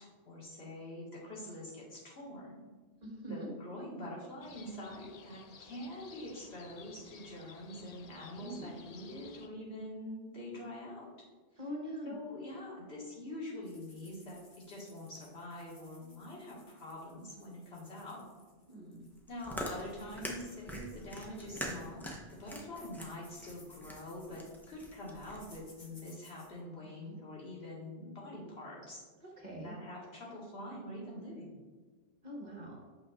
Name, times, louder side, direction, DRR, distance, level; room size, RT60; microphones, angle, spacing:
voice 1, 0.0-2.6 3.3-11.1 12.0-14.4 14.7-18.2 19.3-22.1 22.4-29.0 29.6-31.6, left 1 dB, 75° left, -5 dB, 2.0 m, -45 dB
voice 2, 3.0-3.5 8.4-8.8 11.6-12.1 18.7-19.1 27.0-27.2 29.4-29.8 32.2-32.8, right 1 dB, 45° right, -2 dB, 1.4 m, -43 dB
sound 1, 4.4-9.5, left 5 dB, 50° left, 0.5 m, -55 dB
sound 2, 13.6-26.6, left 1 dB, 25° left, 1.0 m, -62 dB
Chewing mastication, 19.1-25.6, equal, ahead, 0.7 m, -44 dB
8.3 x 6.3 x 2.4 m, 1.4 s
omnidirectional pair, 1.1 m